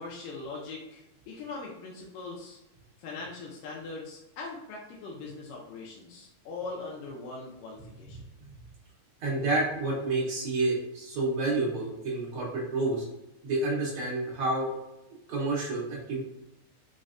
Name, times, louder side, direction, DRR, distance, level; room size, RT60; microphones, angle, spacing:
voice 1, 0.0-2.6 3.0-8.3, left 3 dB, 80° left, -2 dB, 1.8 m, -41 dB
voice 2, 9.2-13.0 13.4-14.7 15.3-16.2, right 2 dB, 90° right, -5 dB, 1.2 m, -29 dB
5.1 x 2.1 x 2.4 m, 0.92 s
omnidirectional pair, 3.5 m